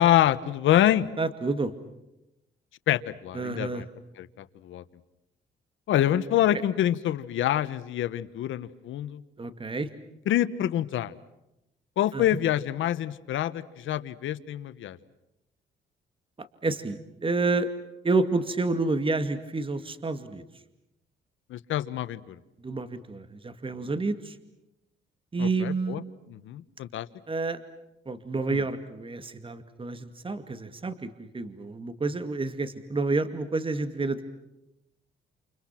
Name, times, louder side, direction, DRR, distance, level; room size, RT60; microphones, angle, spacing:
voice 1, 0.0-1.1 2.9-3.8 4.2-4.8 5.9-9.2 10.3-11.1 12.0-15.0 21.5-22.3 25.4-26.0 26.4-27.1 28.5-28.6, left 12 dB, 80° left, 13 dB, 1.4 m, -26 dB
voice 2, 1.2-1.7 3.3-3.8 9.4-9.9 12.1-12.3 16.4-17.7 18.0-20.4 22.6-24.4 25.3-26.0 27.3-27.6 28.1-34.2, right 3 dB, 25° right, 10 dB, 2.3 m, -29 dB
29.5 x 29.0 x 6.0 m, 0.89 s
cardioid pair, 90°, 20 cm